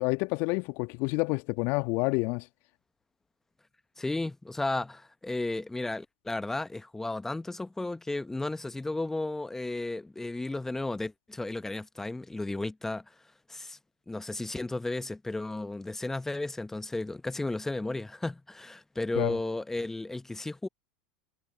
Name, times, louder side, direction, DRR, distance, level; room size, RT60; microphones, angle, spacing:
voice 1, 0.0-2.5 19.1-19.4, left 28 dB, 55° left, 1.7 m, -28 dB
voice 2, 4.0-13.1 13.5-13.8 14.1-20.7, left 2 dB, 10° left, 1.2 m, -34 dB
figure-of-eight pair, 80°, 4 cm